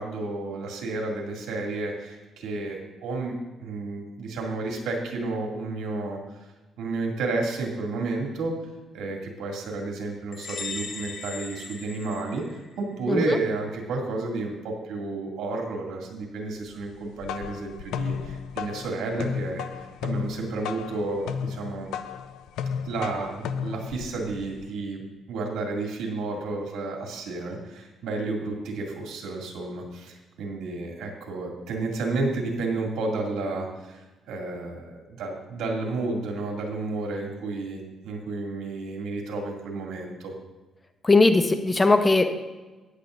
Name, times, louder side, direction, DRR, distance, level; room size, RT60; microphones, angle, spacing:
voice 1, 0.0-3.3 3.6-6.2 6.8-8.6 8.9-12.4 12.8-21.9 22.8-25.0 25.3-40.3, right 3 dB, 85° right, 0 dB, 2.4 m, -31 dB
sound 1, 10.3-12.9, left 4 dB, 50° left, 1.8 m, -38 dB
voice 2, 13.1-13.4 41.0-42.3, left 3 dB, 25° left, 7 dB, 1.0 m, -19 dB
sound 2, 16.9-24.7, left 7 dB, 90° left, 0.5 m, -34 dB
15.0 x 10.5 x 2.6 m, 1.2 s
cardioid pair, 90°, 0 cm